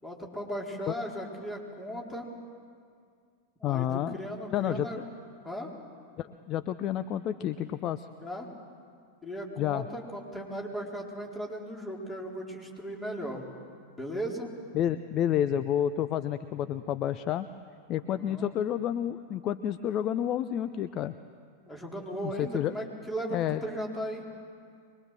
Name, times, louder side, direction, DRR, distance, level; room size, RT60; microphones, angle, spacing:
voice 1, 0.0-2.3 3.6-5.0 5.4-5.7 8.2-8.5 9.2-13.4 14.0-14.5 18.1-18.5 21.7-24.2, equal, 10° left, -1 dB, 4.1 m, -37 dB
voice 2, 3.6-4.2 4.5-4.9 6.2-8.1 9.6-9.9 14.7-17.5 17.9-21.1 22.2-22.7 23.3-23.6, left 10 dB, 35° left, 12 dB, 0.6 m, -30 dB
24.0 x 21.5 x 7.5 m, 2.2 s
figure-of-eight pair, 90°, 0 cm